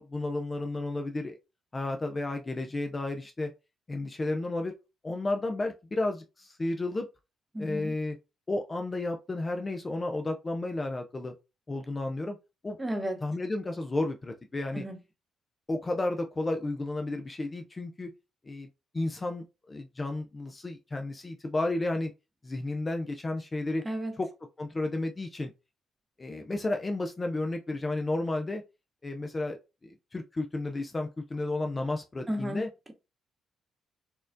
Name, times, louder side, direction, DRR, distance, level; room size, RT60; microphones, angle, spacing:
voice 1, 0.0-1.4 1.7-3.5 3.9-4.7 5.0-7.1 7.6-8.2 8.5-11.3 11.7-12.4 12.6-12.8 13.2-14.8 15.7-18.1 18.4-18.7 18.9-22.1 22.4-23.8 24.2-24.3 24.6-25.5 26.2-28.6 29.0-29.6 29.8-32.7, left 2 dB, 25° left, 0.4 m, -32 dB
voice 2, 7.5-7.9 12.8-13.2 14.7-15.0 23.8-24.2 32.3-32.9, equal, 15° right, 0.8 m, -33 dB
4.3 x 2.3 x 2.5 m
cardioid pair, 90°, 0 cm